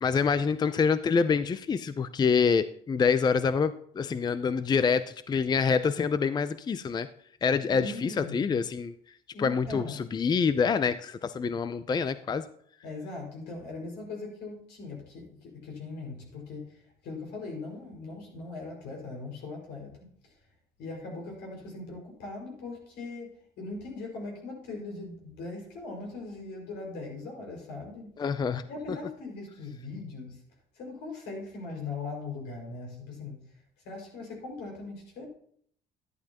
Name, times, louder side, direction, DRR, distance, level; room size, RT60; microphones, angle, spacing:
voice 1, 0.0-7.1 7.4-8.9 9.4-12.4 28.2-28.7, left 5 dB, 25° left, 13 dB, 0.5 m, -26 dB
voice 2, 7.7-8.5 9.3-10.2 12.8-20.1 20.8-28.1 28.7-30.4 30.7-33.4 33.8-35.3, left 3 dB, 85° left, 0 dB, 5.2 m, -40 dB
12.0 x 11.0 x 2.9 m, 0.64 s
cardioid pair, 110°, 17 cm